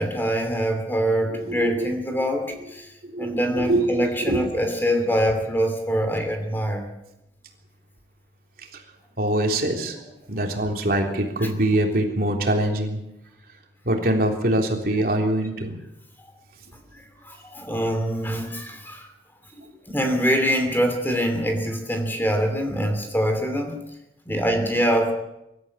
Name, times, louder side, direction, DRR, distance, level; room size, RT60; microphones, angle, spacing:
voice 1, 0.0-2.9 3.2-6.8 16.9-19.1 19.9-23.8 24.3-25.1, equal, 10° left, 5 dB, 2.8 m, -24 dB
voice 2, 1.3-1.9 3.1-4.4 8.7-8.8 9.2-10.0 10.3-13.0 13.9-15.8, right 1 dB, 55° right, 2 dB, 3.6 m, -23 dB
24.5 x 13.5 x 8.6 m, 0.90 s
head